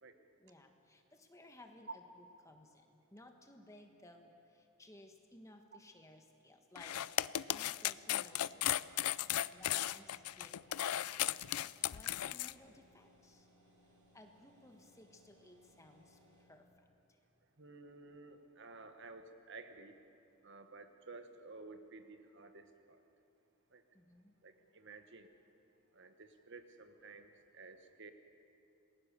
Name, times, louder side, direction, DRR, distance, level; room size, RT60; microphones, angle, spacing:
voice 1, 0.4-7.0 7.5-9.1 9.5-11.2 11.9-13.5 13.8-16.7 17.1-17.2 23.9-24.3, left 1 dB, 15° left, 4 dB, 1.5 m, -59 dB
sound 1, 6.7-12.5, left 12 dB, 80° left, 0.4 m, -35 dB
sound 2, 7.3-16.5, equal, 70° right, 6.0 m, -68 dB
voice 2, 17.6-20.0 20.4-23.0 23.7-23.8 24.4-25.3 25.9-28.1, right 3 dB, 55° right, 8 dB, 1.3 m, -54 dB
27.5 x 20.0 x 6.9 m, 2.7 s
head